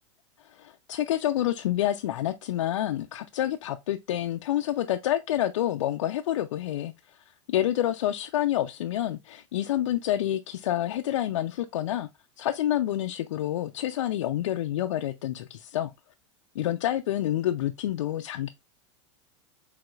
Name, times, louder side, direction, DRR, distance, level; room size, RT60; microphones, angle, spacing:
voice 1, 0.4-12.1 12.4-15.9 16.6-18.5, left 12 dB, 80° left, 0.4 m, -28 dB
4.9 x 3.5 x 2.3 m
hypercardioid pair, 105°, 16 cm